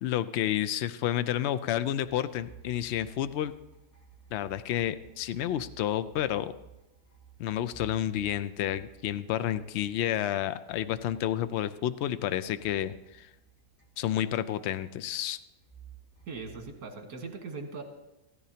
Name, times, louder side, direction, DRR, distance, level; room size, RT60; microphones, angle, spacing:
voice 1, 0.0-3.5 4.3-6.5 7.4-13.3 14.0-15.4, left 11 dB, 70° left, 13 dB, 0.6 m, -30 dB
sound 1, 2.0-12.2 12.6-14.4 15.6-16.6, right 8 dB, 20° left, 1.8 m, -55 dB
voice 2, 16.3-17.8, right 4 dB, 75° right, 3 dB, 1.9 m, -40 dB
15.5 x 14.0 x 2.8 m, 0.96 s
omnidirectional pair, 1.6 m